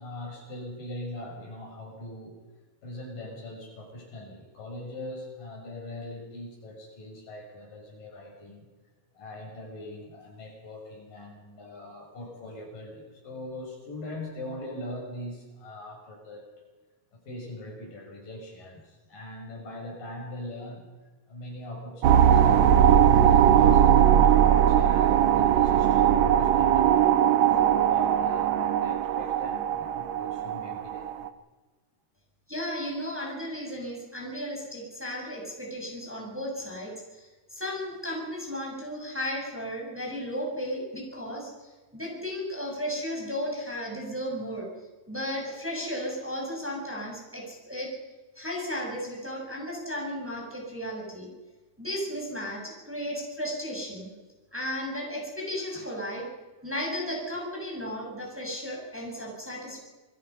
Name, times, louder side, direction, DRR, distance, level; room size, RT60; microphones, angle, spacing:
voice 1, 0.0-2.4 2.8-8.7 9.1-16.5 17.1-20.9 21.3-31.1, left 1 dB, 75° left, 0 dB, 7.9 m, -41 dB
sound 1, 22.0-31.3, right 9 dB, 65° right, 2.0 m, -20 dB
voice 2, 32.5-37.2 37.5-44.7 45.1-47.9 48.3-51.3 51.8-54.1 54.5-56.3 56.6-59.8, equal, 5° right, -1 dB, 6.3 m, -34 dB
28.0 x 21.5 x 5.7 m, 1.2 s
omnidirectional pair, 3.9 m